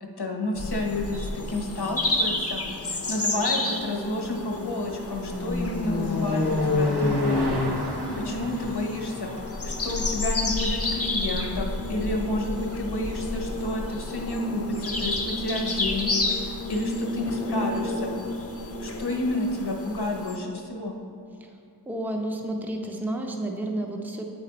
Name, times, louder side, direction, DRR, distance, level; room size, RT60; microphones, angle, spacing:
voice 1, 0.0-7.9 8.2-9.3 9.6-16.3 16.7-18.1 18.8-21.0, left 2 dB, 70° left, 1 dB, 1.0 m, -30 dB
sound 1, 0.6-20.4, left 2 dB, 35° left, 0.6 m, -29 dB
Vehicle, 2.1-12.5 14.8-14.9, right 2 dB, 70° right, 0.9 m, -41 dB
voice 2, 21.9-24.2, right 1 dB, 5° right, 2 dB, 0.5 m, -31 dB
8.2 x 4.3 x 3.9 m, 2.5 s
wide cardioid pair, 45°, 41 cm